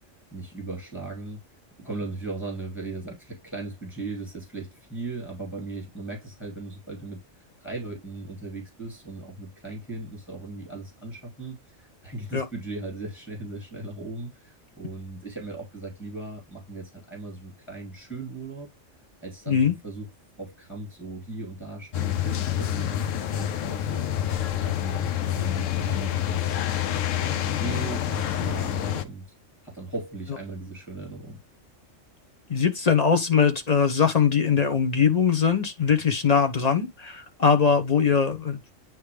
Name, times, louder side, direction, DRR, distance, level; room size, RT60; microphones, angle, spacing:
voice 1, 0.3-1.4 1.8-7.2 7.6-18.7 19.2-20.1 20.4-24.1 24.6-26.7 27.1-29.3 29.6-31.4, right 3 dB, 15° left, 2.7 m, -38 dB
sound 1, 21.9-29.1, left 11 dB, 80° left, 1.0 m, -27 dB
voice 2, 32.5-38.7, left 6 dB, 35° left, 1.1 m, -21 dB
9.3 x 3.1 x 3.4 m
omnidirectional pair, 1.3 m